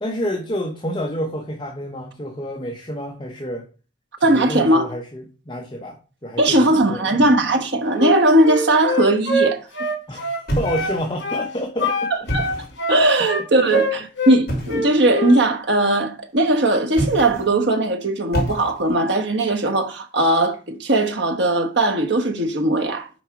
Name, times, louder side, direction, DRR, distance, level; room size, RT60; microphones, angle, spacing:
voice 1, 0.0-3.7 4.2-7.2 10.1-12.7 13.6-13.8, equal, 25° left, 0.8 m, -29 dB
voice 2, 4.2-4.9 6.4-9.6 12.3-12.5 12.9-23.1, right 1 dB, 65° right, 1.1 m, -18 dB
Wind instrument woodwind instrument, 8.0-11.0 11.2-11.5 11.8-14.4 14.7-15.4, left 1 dB, 70° left, 2.6 m, -24 dB
sound 1, 10.5-11.3 12.1-12.8 14.5-14.9 16.9-17.6 18.3-19.0, right 1 dB, 50° left, 3.0 m, -27 dB
6.2 x 5.0 x 4.7 m
head